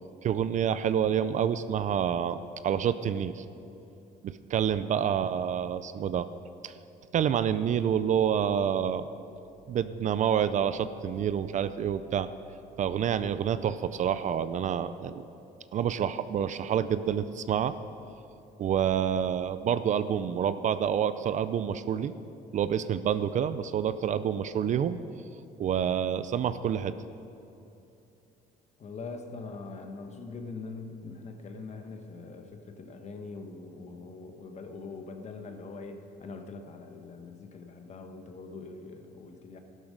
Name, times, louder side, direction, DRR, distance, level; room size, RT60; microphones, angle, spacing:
voice 1, 0.2-3.4 4.2-6.3 6.6-6.7 7.1-9.1 9.7-12.3 12.8-15.2 15.7-17.7 18.6-22.1 22.5-25.0 25.6-26.9, right 8 dB, 45° right, 13 dB, 0.5 m, -28 dB
voice 2, 28.8-39.6, left 3 dB, 40° left, 5 dB, 1.2 m, -43 dB
12.5 x 12.0 x 5.1 m, 2.8 s
cardioid pair, 110°, 17 cm